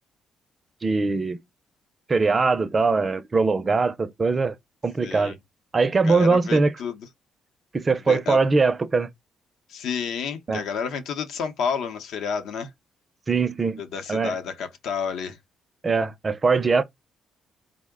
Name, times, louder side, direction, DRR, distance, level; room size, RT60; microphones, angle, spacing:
voice 1, 0.8-1.4 2.1-4.5 4.8-5.3 5.7-6.7 7.7-9.1 10.5-10.6 13.3-13.8 14.1-14.4 15.8-16.8, right 4 dB, 30° right, 0.4 m, -21 dB
voice 2, 5.0-5.4 6.0-7.1 8.1-8.4 9.7-12.7 13.8-15.4, left 6 dB, 80° left, 0.7 m, -30 dB
3.6 x 2.1 x 3.5 m
cardioid pair, 90°, 0 cm